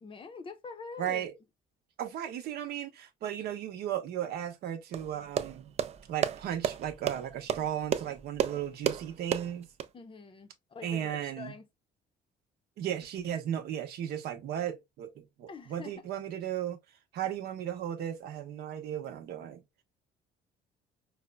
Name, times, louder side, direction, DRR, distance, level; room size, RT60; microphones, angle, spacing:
voice 1, 0.0-1.3 9.9-11.6 15.5-16.2 17.2-17.3, left 5 dB, 30° left, 0.6 m, -45 dB
voice 2, 1.0-1.3 2.0-5.7 6.1-9.7 10.8-11.5 12.8-16.8 17.1-19.6, right 10 dB, 70° right, 0.8 m, -35 dB
sound 1, 4.9-9.9, right 9 dB, 40° right, 0.4 m, -33 dB
4.7 x 2.1 x 2.2 m
cardioid pair, 110°, 17 cm